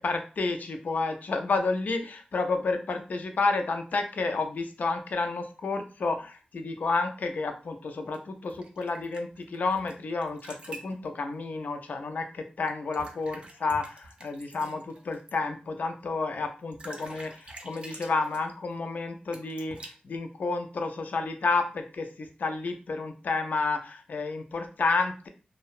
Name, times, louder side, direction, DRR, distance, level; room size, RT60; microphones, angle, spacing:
voice 1, 0.0-25.3, left 3 dB, 65° left, 6 dB, 0.4 m, -30 dB
sound 1, 8.1-9.9 10.2-11.0 12.7-15.3 16.4-16.5 16.7-18.5 19.3-19.9, right 2 dB, 40° right, 0.5 m, -46 dB
2.6 x 2.0 x 2.4 m, 0.36 s
wide cardioid pair, 120°, 3 cm